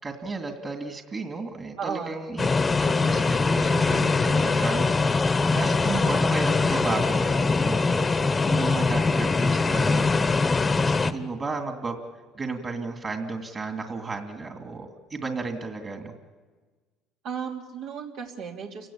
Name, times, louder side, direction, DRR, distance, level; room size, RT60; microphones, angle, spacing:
voice 1, 0.0-2.5 2.8-4.9 5.2-12.0 12.3-16.1, right 3 dB, 30° right, 4 dB, 2.6 m, -33 dB
voice 2, 1.8-2.1 17.2-18.9, right 6 dB, 70° right, -1 dB, 3.0 m, -34 dB
sound 1, 2.4-11.1, left 4 dB, 25° left, 1.2 m, -22 dB
29.0 x 17.0 x 8.7 m, 1.4 s
supercardioid pair, 105°, 0 cm